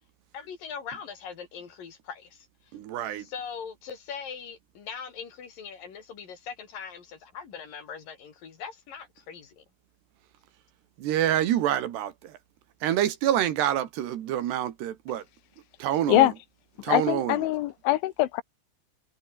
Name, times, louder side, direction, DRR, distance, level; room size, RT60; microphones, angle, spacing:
voice 1, 0.3-2.5 3.2-9.6, left 6 dB, 50° left, 4.7 m, -41 dB
voice 2, 2.7-3.3 11.0-12.3 12.8-15.2 15.8-16.3 16.8-17.4, right 11 dB, 70° right, 3.6 m, -27 dB
voice 3, 16.9-18.4, left 16 dB, 85° left, 3.5 m, -23 dB
omnidirectional pair, 5.3 m